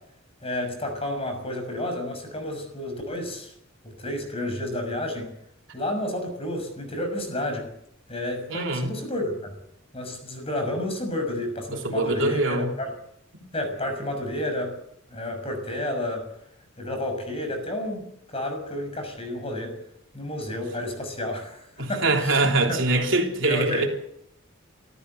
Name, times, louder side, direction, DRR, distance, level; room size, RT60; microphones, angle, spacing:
voice 1, 0.4-3.5 3.8-5.3 5.7-7.7 8.1-9.5 9.9-12.9 13.5-14.8 15.1-16.3 16.8-19.8 20.1-22.8 23.4-23.9, left 1 dB, 30° left, 6.3 m, -31 dB
voice 2, 8.5-8.9 11.8-12.7 21.8-23.9, right 2 dB, 65° right, 3.4 m, -23 dB
27.0 x 14.0 x 8.1 m
head